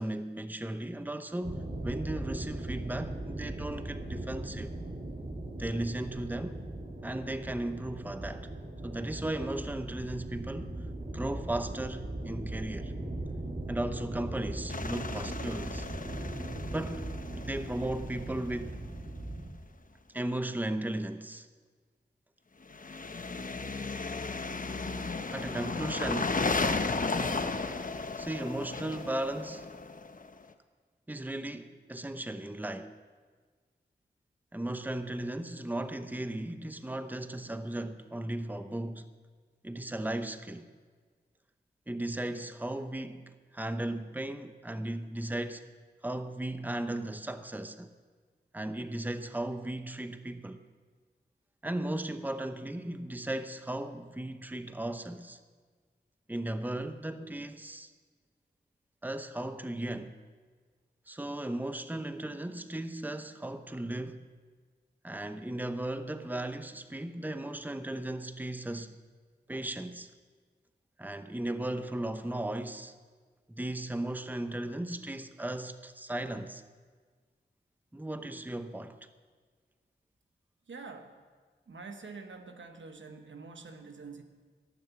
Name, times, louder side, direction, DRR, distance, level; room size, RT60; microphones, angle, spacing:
voice 1, 0.0-4.7 5.6-6.6 7.0-8.5 8.8-10.9 11.1-12.9 13.7-15.9 16.7-17.1 17.3-18.8 20.1-21.5 25.3-26.5 28.2-29.7 31.1-32.9 34.5-39.1 39.6-40.7 41.9-45.6 46.0-47.9 48.5-50.6 51.6-55.4 56.3-57.9 59.0-60.1 61.1-64.3 65.0-69.0 69.5-70.1 71.0-72.9 73.5-76.6 77.9-79.0, right 1 dB, 10° right, 0.8 m, -36 dB
sound 1, 1.4-19.5, right 1 dB, 55° right, 2.5 m, -39 dB
sound 2, 14.7-18.6 22.7-30.4, left 3 dB, 45° left, 0.9 m, -35 dB
voice 2, 80.7-81.2 81.7-84.2, right 4 dB, 85° right, 1.1 m, -46 dB
17.5 x 7.3 x 7.0 m
cardioid pair, 45°, 19 cm